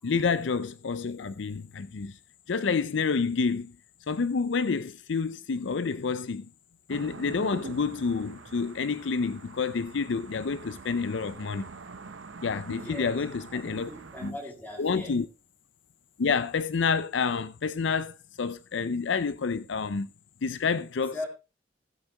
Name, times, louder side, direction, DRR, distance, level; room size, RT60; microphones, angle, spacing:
voice 1, 0.0-2.2 2.5-3.7 4.1-6.5 6.9-11.7 12.4-13.9 14.2-14.3 14.8-15.3 16.2-20.1 20.4-21.1, left 5 dB, 70° left, 0.5 m, -28 dB
sound 1, 6.9-14.3, right 4 dB, 80° right, 0.8 m, -45 dB
voice 2, 12.8-13.2 13.5-15.2 21.1-21.3, left 2 dB, 10° left, 3.4 m, -40 dB
15.0 x 8.0 x 3.4 m
head